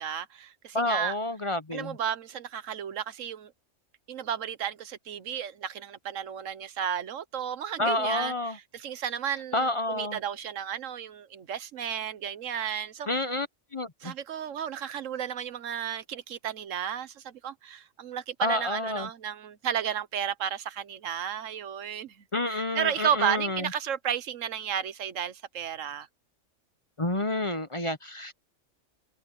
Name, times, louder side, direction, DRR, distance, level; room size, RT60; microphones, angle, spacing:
voice 1, 0.0-1.1 1.7-3.5 4.1-13.1 14.0-22.2 22.5-26.1, right 9 dB, 90° right, 1.3 m, -33 dB
voice 2, 0.7-2.0 7.8-8.6 9.5-10.2 13.1-13.5 13.7-14.1 18.4-19.1 22.3-23.7 27.0-28.3, left 2 dB, 30° left, 0.9 m, -29 dB
omnidirectional pair, 1.3 m